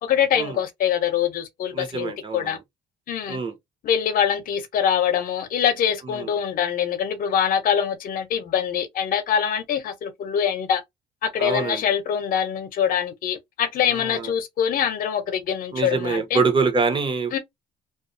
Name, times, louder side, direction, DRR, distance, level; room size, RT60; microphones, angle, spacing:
voice 1, 0.0-2.6 3.1-3.4 3.8-10.8 11.2-16.4 17.3-17.4, left 8 dB, 55° left, 0.8 m, -24 dB
voice 2, 1.7-2.6 3.3-3.5 6.0-6.3 11.4-11.9 13.9-14.3 15.7-17.4, right 4 dB, 30° right, 0.8 m, -25 dB
2.4 x 2.3 x 2.6 m
cardioid pair, 110°, 17 cm